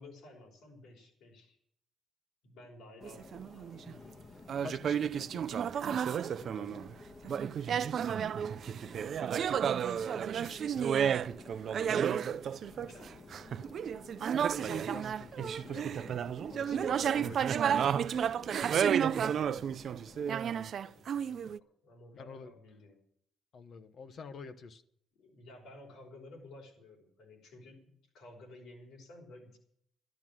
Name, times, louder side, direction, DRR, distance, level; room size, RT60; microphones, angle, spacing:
voice 1, 0.0-1.6 2.4-3.5 9.9-10.8 12.7-13.5 18.5-20.5 20.8-23.0 25.1-29.6, left 1 dB, 85° left, 1 dB, 5.5 m, -54 dB
Subway metro underground, 3.0-20.3, left 3 dB, 40° left, 1.3 m, -53 dB
sound 1, 3.0-3.9 4.5-6.9 7.2-21.6, right 8 dB, 60° right, 0.5 m, -32 dB
voice 2, 3.9-4.3 4.6-5.5 6.4-6.9 14.6-17.6 22.1-22.5 23.5-24.8, left 5 dB, 60° left, 10 dB, 1.2 m, -49 dB
12.0 x 12.0 x 7.5 m, 0.69 s
cardioid pair, 90°, 0 cm